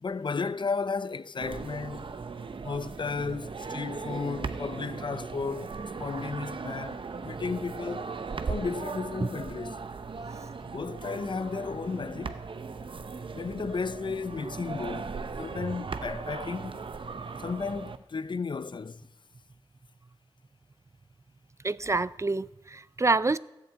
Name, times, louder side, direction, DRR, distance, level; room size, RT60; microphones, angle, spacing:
voice 1, 0.0-2.1 2.6-5.7 6.0-8.1 8.5-9.8 10.6-12.4 13.3-16.8 17.4-19.0, left 4 dB, 60° left, 0.5 m, -34 dB
sound 1, 1.4-18.0, right 4 dB, 70° right, 0.7 m, -38 dB
voice 2, 21.6-23.4, right 3 dB, 35° right, 0.4 m, -27 dB
13.5 x 7.5 x 8.2 m
cardioid pair, 50°, 9 cm